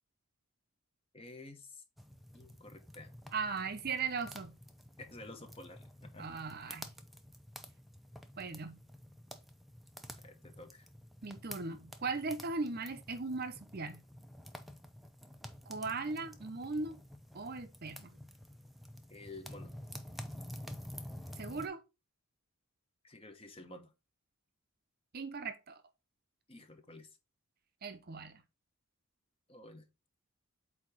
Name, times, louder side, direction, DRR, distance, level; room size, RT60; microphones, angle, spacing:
voice 1, 1.1-1.8 2.3-3.2 5.0-6.3 10.2-10.9 19.1-19.7 23.0-23.9 26.5-27.1 29.5-29.9, left 2 dB, 25° left, 0.9 m, -51 dB
sound 1, 2.0-21.7, equal, ahead, 0.5 m, -50 dB
voice 2, 3.3-4.6 6.2-6.9 8.4-8.8 11.2-14.0 15.7-17.0 17.3-18.2 21.4-21.8 25.1-25.8 27.8-28.4, right 4 dB, 40° right, 0.6 m, -38 dB
8.2 x 2.9 x 4.6 m
head